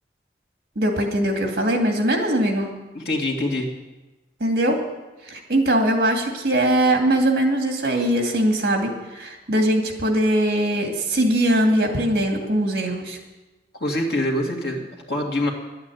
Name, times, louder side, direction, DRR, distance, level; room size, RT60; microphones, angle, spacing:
voice 1, 0.8-2.7 4.4-4.8 5.2-13.2, right 1 dB, 60° right, 2 dB, 2.5 m, -21 dB
voice 2, 2.9-3.7 13.8-15.5, left 1 dB, 65° left, 0 dB, 2.4 m, -25 dB
11.5 x 8.7 x 9.4 m, 1.1 s
head